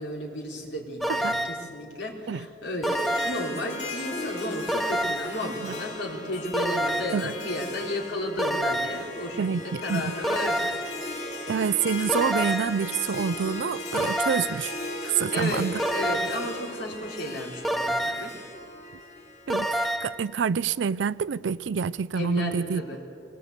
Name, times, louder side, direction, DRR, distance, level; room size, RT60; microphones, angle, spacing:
voice 1, 0.0-10.7 15.3-18.4 22.2-23.0, left 1 dB, 80° left, 3.7 m, -33 dB
sound 1, 1.0-1.7 2.8-3.6 4.7-5.4 6.5-7.3 8.4-9.1 10.2-11.0 12.1-12.8 13.9-14.7 15.8-16.5 17.6-18.4 19.5-20.2, right 1 dB, ahead, 0.5 m, -28 dB
Harp, 2.8-20.1, left 2 dB, 40° left, 2.7 m, -37 dB
voice 2, 9.4-10.1 11.5-14.7 15.0-15.8 19.5-22.8, right 6 dB, 85° right, 0.4 m, -27 dB
22.5 x 18.5 x 8.2 m
head